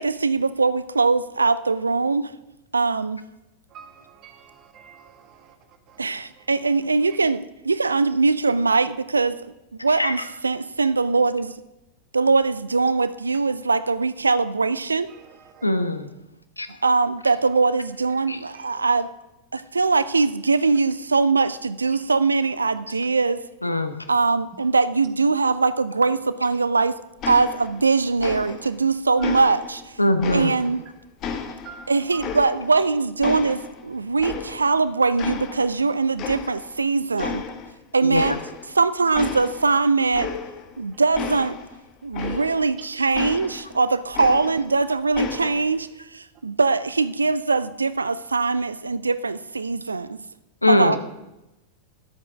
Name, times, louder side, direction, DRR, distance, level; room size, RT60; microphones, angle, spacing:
voice 1, 0.0-2.3 2.7-3.2 6.0-9.5 9.8-11.5 12.1-15.1 16.8-19.1 19.5-23.4 24.1-27.0 27.3-30.0 30.3-30.8 31.9-37.4 37.9-38.3 38.7-40.3 40.8-41.6 42.0-50.2 50.7-51.0, right 4 dB, 75° right, 15 dB, 0.4 m, -22 dB
voice 2, 3.7-5.5 5.9-6.0 7.1-7.2 15.1-15.6 18.5-18.8 29.2-29.4 31.6-32.4 42.2-42.4, right 7 dB, 35° right, 5 dB, 1.8 m, -46 dB
voice 3, 15.6-16.1 16.6-16.7 18.3-18.4 23.6-23.9 30.0-30.5 38.1-38.2 50.6-51.0, left 2 dB, 85° left, 9 dB, 0.9 m, -21 dB
sound 1, 27.2-27.9 28.2-28.8 29.2-30.8 31.2-32.9 33.2-34.8 35.2-35.9 36.2-36.8 37.2-37.7 38.1-38.8 39.1-42.8 43.1-44.8 45.1-45.8, left 6 dB, 35° left, 1.2 m, -33 dB
11.5 x 8.2 x 5.8 m, 0.95 s
figure-of-eight pair, 90°, 0 cm